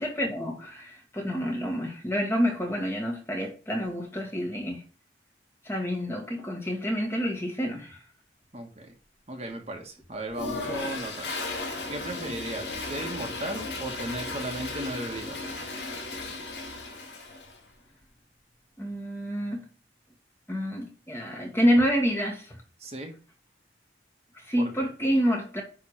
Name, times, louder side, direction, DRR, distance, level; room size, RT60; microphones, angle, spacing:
voice 1, 0.0-4.8 5.6-8.1 18.8-19.6 20.5-22.6 24.3-25.6, equal, 15° left, 1.7 m, -28 dB
voice 2, 8.5-8.9 9.3-11.3 11.9-15.5 22.8-23.1 24.6-24.7, right 1 dB, 35° right, 1.4 m, -36 dB
Toilet flush, 10.3-17.6, left 3 dB, 70° left, 2.6 m, -35 dB
10.0 x 3.6 x 4.6 m
head